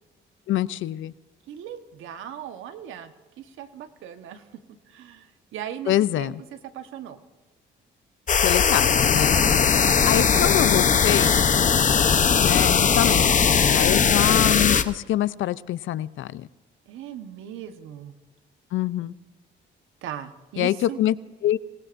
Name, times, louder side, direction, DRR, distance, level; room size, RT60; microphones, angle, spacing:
voice 1, 0.5-1.1 5.9-6.3 8.4-9.4 10.1-11.4 12.4-16.5 18.7-19.1 20.6-21.1 21.4-21.6, left 13 dB, 80° left, 17 dB, 0.6 m, -25 dB
voice 2, 1.5-4.5 4.9-7.2 9.3-10.5 13.8-13.9 16.9-18.1 20.0-21.0, right 10 dB, 85° right, 9 dB, 1.3 m, -38 dB
sound 1, 8.3-14.8, left 6 dB, 40° left, 0.9 m, -19 dB
26.5 x 19.0 x 2.6 m, 1.2 s
cardioid pair, 90°, 20 cm